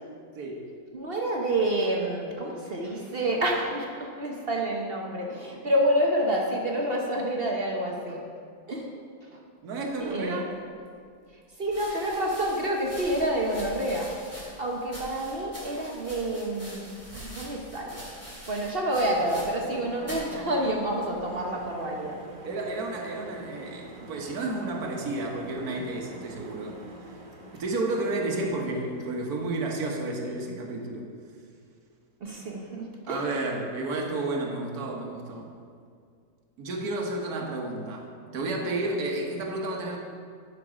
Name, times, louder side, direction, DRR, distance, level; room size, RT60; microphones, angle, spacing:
voice 1, 0.3-0.7 9.3-10.5 22.4-26.8 27.5-31.1 33.1-35.5 36.6-40.0, right 2 dB, 60° right, 0 dB, 1.6 m, -31 dB
voice 2, 0.9-8.2 8.7-8.9 9.3-9.4 10.0-10.4 11.6-18.0 18.5-22.2 32.2-33.3, right 1 dB, 45° right, -1 dB, 0.9 m, -28 dB
sound 1, 10.6-10.7 11.6-19.8 20.0-20.3 21.1-21.5, equal, 10° left, 2.4 m, -44 dB
sound 2, 18.9-30.1, right 1 dB, 85° right, 1.9 m, -46 dB
12.0 x 5.4 x 4.9 m, 2.2 s
omnidirectional pair, 1.9 m